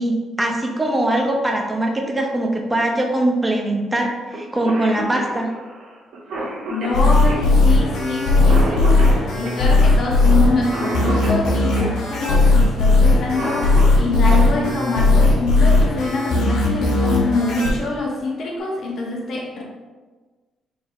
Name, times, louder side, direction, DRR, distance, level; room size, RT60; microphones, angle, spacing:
voice 1, 0.0-5.5, right 1 dB, 15° right, 1 dB, 0.6 m, -21 dB
Cough, 4.3-4.4 4.6-12.0 13.1-14.1 15.8-15.9 16.9-17.2 17.6-17.7 18.1-18.6, right 1 dB, 85° right, 1.1 m, -30 dB
voice 2, 6.7-19.6, left 2 dB, 50° left, -2 dB, 0.7 m, -25 dB
sound 1, 6.9-17.7, left 3 dB, 80° left, 1.2 m, -16 dB
3.9 x 2.6 x 4.0 m, 1.3 s
cardioid pair, 150°, 0 cm